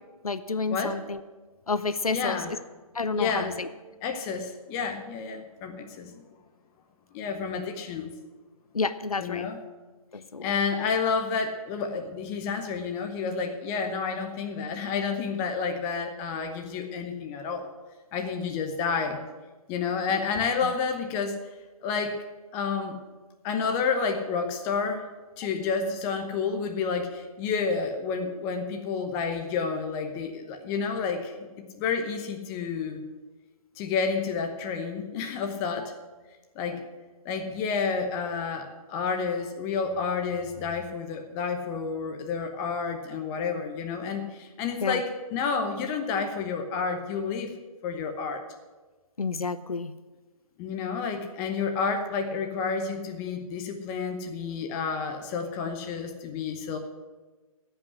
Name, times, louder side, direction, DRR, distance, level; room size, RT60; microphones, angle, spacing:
voice 1, 0.2-1.2 1.7-2.4 2.9-3.7 8.7-9.5 10.1-10.5 44.8-45.0 49.2-49.9, left 4 dB, 75° left, 13 dB, 0.7 m, -29 dB
voice 2, 2.1-2.5 3.2-3.5 4.0-6.2 7.1-8.1 9.2-9.6 10.4-17.7 18.1-19.2 19.7-21.4 21.8-22.2 22.5-23.0 23.4-25.1 25.4-31.3 31.8-33.1 33.8-35.9 36.5-36.8 37.2-47.5 47.8-48.4 50.6-56.8, left 5 dB, 15° left, 5 dB, 0.9 m, -30 dB
14.5 x 5.6 x 9.5 m, 1.3 s
figure-of-eight pair, 145°, 19 cm